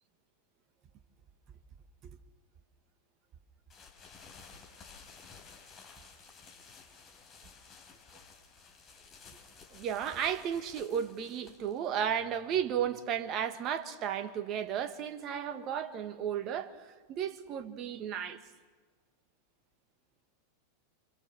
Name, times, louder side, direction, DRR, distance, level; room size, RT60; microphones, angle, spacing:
sound 1, 3.7-13.3, left 5 dB, 30° left, 4.9 m, -55 dB
voice 1, 9.7-18.4, right 8 dB, 35° right, 1.7 m, -34 dB
29.0 x 26.0 x 6.9 m
figure-of-eight pair, 90°, 0 cm